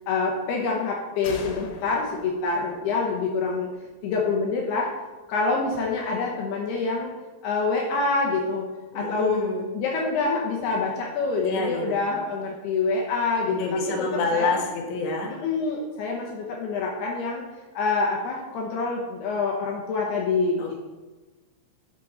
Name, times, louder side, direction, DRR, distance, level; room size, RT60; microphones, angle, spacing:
voice 1, 0.1-3.7 4.0-4.9 5.3-7.1 7.4-8.7 8.9-9.5 9.8-13.8 14.3-14.5 15.4-17.4 17.7-20.7, left 4 dB, 75° left, -1 dB, 2.8 m, -26 dB
sound 1, 1.2-4.8, left 4 dB, 90° left, 3.6 m, -43 dB
voice 2, 8.9-9.7 11.4-12.0 13.5-15.4 20.6-20.7, left 3 dB, 60° left, 0 dB, 2.5 m, -27 dB
12.5 x 7.2 x 3.9 m, 1.2 s
omnidirectional pair, 5.2 m